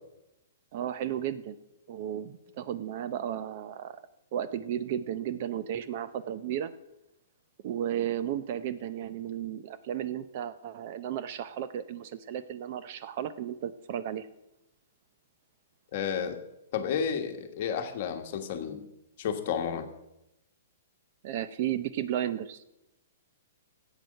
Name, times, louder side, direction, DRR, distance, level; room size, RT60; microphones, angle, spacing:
voice 1, 0.7-1.6 1.9-4.0 4.3-6.7 7.6-14.3 21.2-22.6, right 10 dB, 45° right, 13 dB, 0.6 m, -34 dB
voice 2, 15.9-16.4 16.7-18.8 19.2-19.9, left 7 dB, 45° left, 6 dB, 1.3 m, -31 dB
10.5 x 8.2 x 6.5 m, 0.88 s
hypercardioid pair, 160°, 0 cm